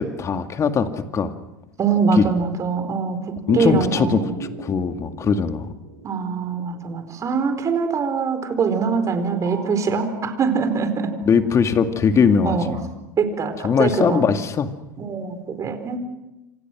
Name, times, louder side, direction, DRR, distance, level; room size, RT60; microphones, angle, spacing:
voice 1, 0.0-1.3 2.2-2.3 3.5-5.7 11.3-12.8 13.6-14.7, left 6 dB, 30° left, 7 dB, 2.2 m, -20 dB
voice 2, 1.8-4.3 6.0-11.1 12.4-12.8 13.2-14.2 15.0-16.0, right 5 dB, 30° right, 8 dB, 4.6 m, -23 dB
sound 1, 3.5-7.7 8.7-12.5, right 4 dB, 90° right, 6.8 m, -37 dB
29.0 x 26.5 x 6.2 m, 0.97 s
hypercardioid pair, 85°, 10 cm